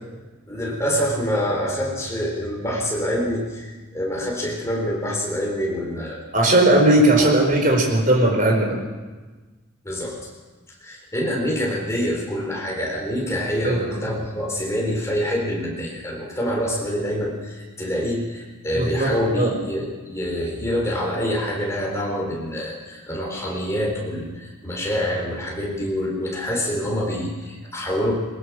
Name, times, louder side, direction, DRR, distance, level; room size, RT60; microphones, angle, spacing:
voice 1, 0.5-6.2 7.2-7.3 9.8-10.2 10.8-28.1, equal, 15° left, -1 dB, 4.2 m, -26 dB
voice 2, 6.3-8.8 13.6-13.9 18.7-19.1 19.4-19.5, right 1 dB, 40° right, 0 dB, 4.6 m, -17 dB
22.0 x 21.0 x 6.3 m, 1.3 s
head